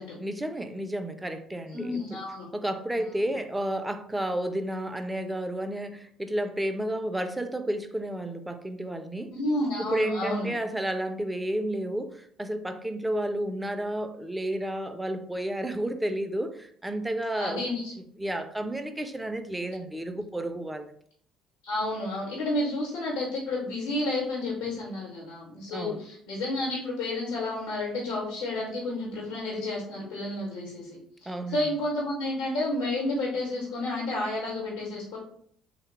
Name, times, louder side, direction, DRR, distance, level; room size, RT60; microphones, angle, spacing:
voice 1, 0.2-2.0 2.5-9.3 9.8-17.6 18.2-20.9 25.7-26.0 31.3-31.6, right 1 dB, 10° right, 8 dB, 0.4 m, -31 dB
voice 2, 1.7-2.5 3.2-3.3 9.3-10.5 17.4-17.9 21.6-35.2, left 2 dB, 80° left, -4 dB, 1.0 m, -31 dB
3.4 x 2.2 x 3.0 m, 0.64 s
hypercardioid pair, 55°, 0 cm